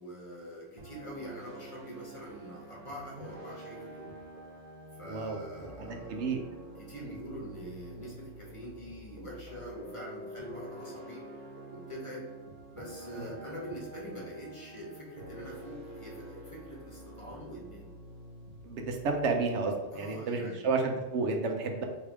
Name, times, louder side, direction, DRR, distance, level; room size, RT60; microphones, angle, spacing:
voice 1, 0.0-4.1 4.9-6.3 6.8-12.3 12.7-17.9 19.9-20.8, equal, 30° left, -4 dB, 1.0 m, -44 dB
sound 1, 0.8-19.9, right 1 dB, 55° right, 0.7 m, -48 dB
voice 2, 5.0-5.4 5.9-6.4 13.2-13.3 18.6-21.8, right 4 dB, 80° right, 3 dB, 1.0 m, -31 dB
3.4 x 2.7 x 4.6 m, 1.2 s
omnidirectional pair, 1.2 m